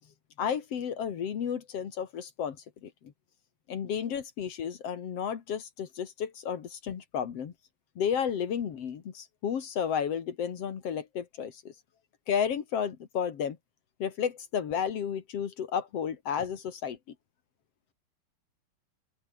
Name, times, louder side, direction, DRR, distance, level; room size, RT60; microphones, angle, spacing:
voice 1, 0.4-2.6 2.8-2.9 3.7-7.5 7.9-11.7 12.3-13.6 14.0-17.0, left 8 dB, 65° left, 1.5 m, -32 dB
open air
omnidirectional pair, 5.8 m